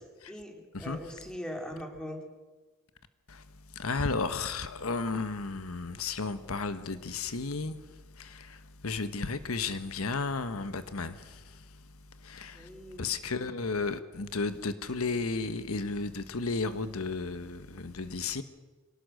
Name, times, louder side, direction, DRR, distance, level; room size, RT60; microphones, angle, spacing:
voice 1, 0.3-2.2 12.5-13.5, equal, 5° left, 3.2 m, -41 dB
voice 2, 3.7-7.8 8.1-11.6 12.2-12.7 13.0-18.4, left 4 dB, 85° left, 1.1 m, -33 dB
25.0 x 18.5 x 6.4 m
head